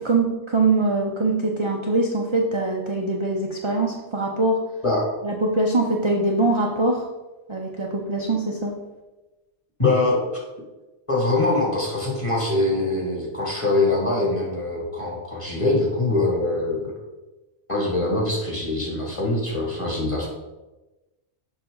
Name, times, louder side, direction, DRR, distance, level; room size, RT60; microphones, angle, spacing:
voice 1, 0.0-4.6 5.2-7.1 7.5-8.7, right 2 dB, 30° right, -1 dB, 0.7 m, -23 dB
voice 2, 9.8-10.2 11.1-16.9 17.7-20.3, left 2 dB, 25° left, -3 dB, 2.2 m, -23 dB
7.0 x 5.9 x 3.9 m, 1.1 s
omnidirectional pair, 1.2 m